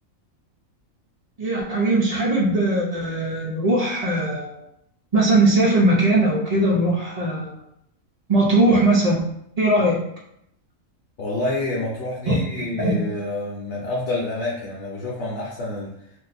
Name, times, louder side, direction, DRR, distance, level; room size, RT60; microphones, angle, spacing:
voice 1, 1.4-4.6 5.1-7.5 8.3-9.2 9.6-10.0 12.3-12.4 12.8-13.0, right 1 dB, 80° right, -3 dB, 0.3 m, -19 dB
voice 2, 11.2-16.1, left 2 dB, 65° left, -4 dB, 0.9 m, -28 dB
2.6 x 2.1 x 4.0 m, 0.75 s
omnidirectional pair, 1.4 m